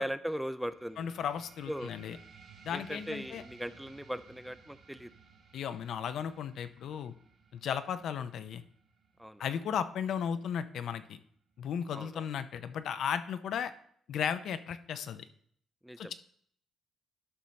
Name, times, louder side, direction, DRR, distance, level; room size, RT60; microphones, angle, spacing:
voice 1, 0.0-1.1 1.7-1.9 2.7-5.1 9.2-9.4 11.9-12.3 15.8-16.1, equal, 5° right, 14 dB, 0.3 m, -38 dB
sound 1, 0.6-11.7, right 5 dB, 65° right, 1.8 m, -58 dB
voice 2, 1.0-2.2 2.6-3.4 5.5-7.1 7.5-8.6 9.4-11.2 11.6-13.7 14.1-15.2 16.0-16.1, left 8 dB, 70° left, 11 dB, 0.5 m, -35 dB
11.0 x 5.5 x 3.2 m, 0.64 s
cardioid pair, 90°, 0 cm